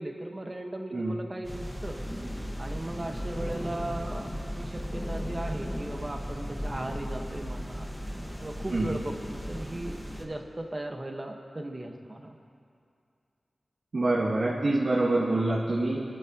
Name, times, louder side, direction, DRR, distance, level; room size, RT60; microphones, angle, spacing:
voice 1, 0.0-2.0 2.6-7.9 8.4-12.4, right 1 dB, 30° right, 2 dB, 1.5 m, -37 dB
sound 1, 1.4-10.2, equal, 10° left, 1.6 m, -36 dB
voice 2, 13.9-16.0, right 2 dB, 70° right, -10 dB, 2.3 m, -26 dB
27.0 x 12.5 x 3.0 m, 2.4 s
wide cardioid pair, 70°, 0 cm